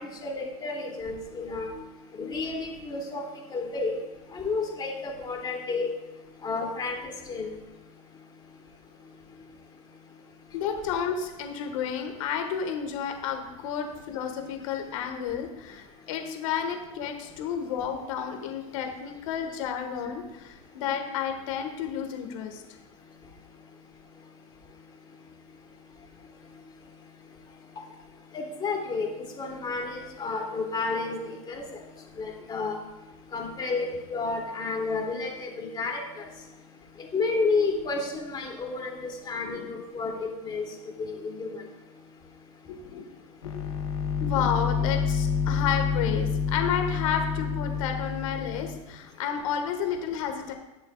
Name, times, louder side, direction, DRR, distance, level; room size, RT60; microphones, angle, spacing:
voice 1, 0.2-1.7 2.2-3.2 3.5-3.9 4.3-5.9 6.4-7.5 28.3-29.1 29.4-31.6 32.2-32.8 33.3-36.2 37.1-40.6 41.0-41.6, left 3 dB, 25° left, 0 dB, 2.7 m, -31 dB
voice 2, 10.5-22.6 39.4-39.7 42.6-43.0 43.5-43.7 44.2-50.5, left 8 dB, 75° left, 5 dB, 1.6 m, -31 dB
sound 1, 43.4-48.8, left 6 dB, 90° left, 1.3 m, -28 dB
20.0 x 6.7 x 2.4 m, 1.0 s
supercardioid pair, 115°, 17 cm